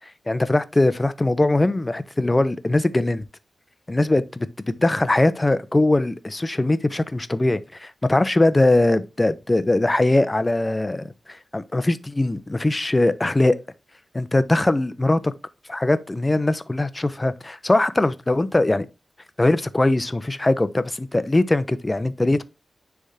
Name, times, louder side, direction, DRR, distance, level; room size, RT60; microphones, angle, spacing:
voice 1, 0.3-3.3 3.9-13.6 14.1-15.3 15.7-18.9 19.4-22.4, left 2 dB, 25° left, 0.7 m, -21 dB
10.0 x 3.6 x 2.7 m
cardioid pair, 70°, 0 cm